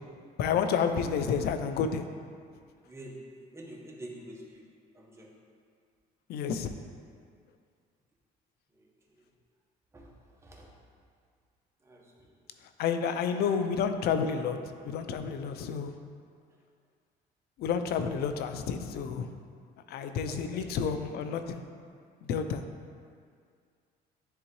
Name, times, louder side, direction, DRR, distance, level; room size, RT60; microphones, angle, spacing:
voice 1, 0.4-2.0 6.3-6.7 12.8-14.6 14.8-15.9 17.6-19.3 19.9-21.6 22.3-22.6, left 6 dB, 70° left, 8 dB, 0.5 m, -30 dB
voice 2, 2.8-4.6 4.9-5.3 8.7-8.9 9.9-10.1 10.4-10.7 11.8-12.0 20.3-20.7, right 1 dB, 15° right, -3 dB, 1.1 m, -46 dB
9.9 x 3.6 x 3.1 m, 2.1 s
cardioid pair, 110°, 17 cm